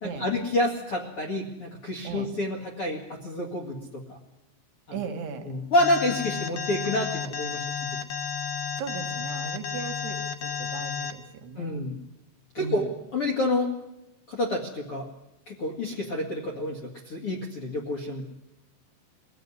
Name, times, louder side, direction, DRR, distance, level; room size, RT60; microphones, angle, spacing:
voice 1, 0.0-4.2 4.9-5.0 5.5-7.7 11.6-12.0 12.5-13.7 14.3-15.1 15.5-18.2, left 1 dB, 45° left, 0 dB, 1.9 m, -28 dB
voice 2, 4.9-5.5 8.8-11.9 12.6-12.9, right 6 dB, 65° right, 5 dB, 3.7 m, -37 dB
Alarm, 5.8-11.1, left 7 dB, 65° left, 2.4 m, -32 dB
22.5 x 16.0 x 9.7 m, 0.92 s
omnidirectional pair, 5.2 m